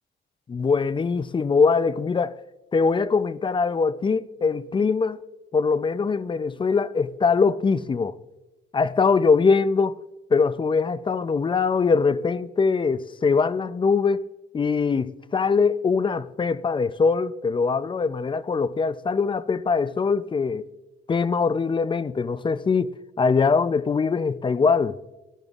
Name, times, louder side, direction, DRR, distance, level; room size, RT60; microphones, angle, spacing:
voice 1, 0.5-2.4 2.7-5.2 5.5-8.2 8.7-10.0 10.3-14.3 14.5-20.6 21.1-22.9 23.2-25.0, left 5 dB, 25° left, 0.4 m, -22 dB
17.5 x 12.5 x 2.4 m
cardioid pair, 90°, 20 cm